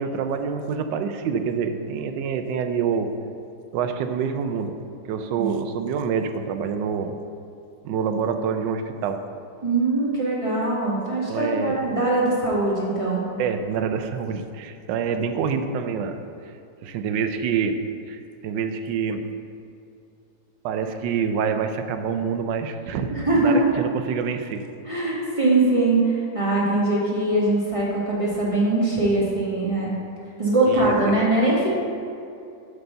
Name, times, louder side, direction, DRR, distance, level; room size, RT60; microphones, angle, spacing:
voice 1, 0.0-3.1 3.7-4.8 5.1-7.2 7.8-9.2 11.3-11.9 13.4-16.2 16.8-19.3 20.6-24.6 30.7-31.2, right 6 dB, 85° right, 7 dB, 1.3 m, -26 dB
voice 2, 9.6-13.3 23.1-23.7 24.8-29.9 30.4-31.7, right 2 dB, 20° right, -6 dB, 1.4 m, -22 dB
8.0 x 4.0 x 6.7 m, 2.6 s
omnidirectional pair, 1.9 m